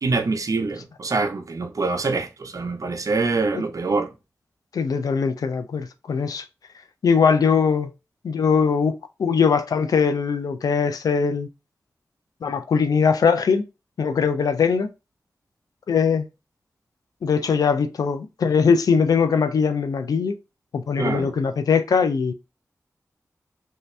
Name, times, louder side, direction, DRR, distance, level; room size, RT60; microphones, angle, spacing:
voice 1, 0.0-4.1 21.0-21.3, right 3 dB, 65° right, 0.7 m, -25 dB
voice 2, 4.7-6.4 7.0-7.9 8.2-11.5 12.4-13.6 14.0-14.9 15.9-16.3 17.2-20.4 20.7-22.3, left 6 dB, 90° left, 0.4 m, -21 dB
3.3 x 2.7 x 3.1 m
cardioid pair, 40°, 6 cm